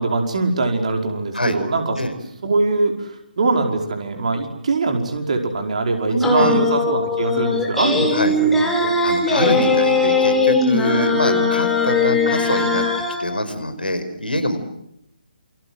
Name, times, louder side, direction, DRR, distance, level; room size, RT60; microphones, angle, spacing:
voice 1, 0.0-2.0 2.4-8.9 11.2-11.5, right 3 dB, 45° right, 4 dB, 5.1 m, -22 dB
voice 2, 6.1-6.6 8.1-8.3 9.0-12.9 13.2-14.6, equal, 75° left, 11 dB, 5.3 m, -23 dB
sound 1, 6.2-13.2, left 3 dB, 5° left, 4.9 m, -19 dB
28.5 x 26.0 x 7.9 m, 0.78 s
figure-of-eight pair, 145°, 5 cm